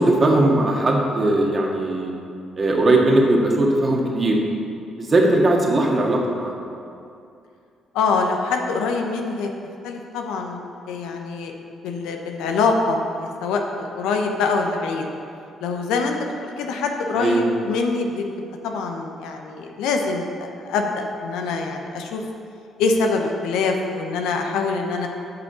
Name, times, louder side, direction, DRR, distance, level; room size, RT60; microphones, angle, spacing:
voice 1, 0.0-2.1 2.5-4.4 5.0-6.5 17.1-17.5, right 1 dB, 40° right, -1 dB, 1.8 m, -19 dB
voice 2, 7.9-9.5 9.8-10.6 10.9-11.5 11.8-15.1 15.6-18.2 18.6-22.2 22.8-25.1, left 4 dB, 80° left, 3 dB, 0.9 m, -24 dB
8.4 x 5.4 x 6.8 m, 2.5 s
supercardioid pair, 55°, 0 cm